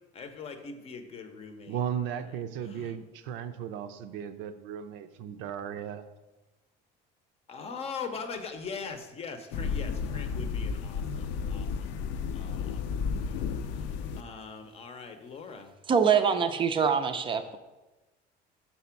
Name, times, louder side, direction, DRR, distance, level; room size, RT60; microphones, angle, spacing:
voice 1, 0.1-1.8 2.7-3.0 7.5-13.4 13.7-15.7, left 5 dB, 35° left, 7 dB, 0.7 m, -42 dB
voice 2, 1.7-6.1, right 8 dB, 75° right, 9 dB, 0.6 m, -36 dB
sound 1, 9.5-14.2, left 6 dB, 75° left, 0.5 m, -32 dB
voice 3, 15.9-17.6, right 6 dB, 25° right, 8 dB, 0.4 m, -24 dB
5.9 x 4.1 x 5.8 m, 1.1 s
cardioid pair, 155°, 19 cm